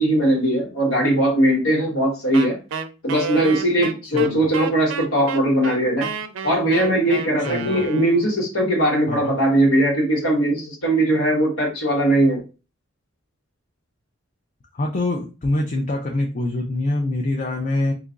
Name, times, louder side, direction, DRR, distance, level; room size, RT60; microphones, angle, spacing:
voice 1, 0.0-2.6 3.0-6.1 6.4-12.4, right 1 dB, 90° left, -2 dB, 1.6 m, -19 dB
Wind instrument woodwind instrument, 2.3-8.4, right 6 dB, 65° right, 0.4 m, -31 dB
voice 2, 4.1-4.5 7.5-7.8 9.1-9.3 14.7-17.9, left 2 dB, 40° left, 1 dB, 0.5 m, -24 dB
2.9 x 2.4 x 3.7 m, 0.31 s
head